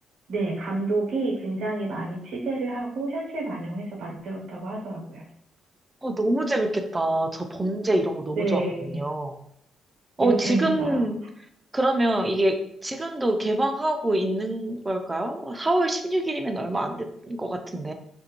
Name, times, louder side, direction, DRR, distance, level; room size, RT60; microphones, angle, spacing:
voice 1, 0.3-5.3 8.3-9.0 10.2-11.0, right 2 dB, 75° right, -2 dB, 0.7 m, -29 dB
voice 2, 6.0-9.4 10.2-11.2 11.7-17.9, right 1 dB, 20° right, 5 dB, 0.4 m, -25 dB
2.5 x 2.1 x 2.8 m, 0.70 s
cardioid pair, 90°, 0 cm